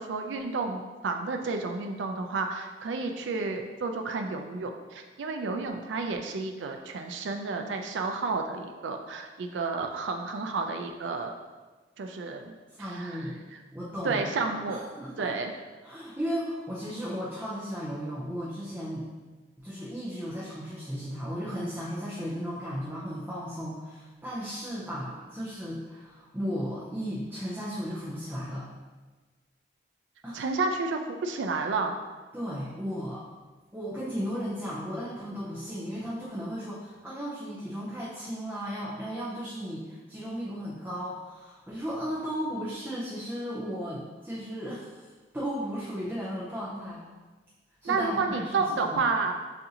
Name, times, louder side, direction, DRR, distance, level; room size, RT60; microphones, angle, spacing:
voice 1, 0.0-11.3 12.0-13.3 14.0-14.9 15.2-15.5 30.3-32.0 47.8-49.4, right 4 dB, 85° right, 5 dB, 0.4 m, -31 dB
voice 2, 12.8-13.4 13.7-15.3 15.8-19.1 19.6-28.7 30.2-30.4 32.3-33.3 33.7-47.0 47.8-49.0, equal, 10° right, -7 dB, 0.6 m, -35 dB
6.4 x 2.6 x 2.8 m, 1.3 s
head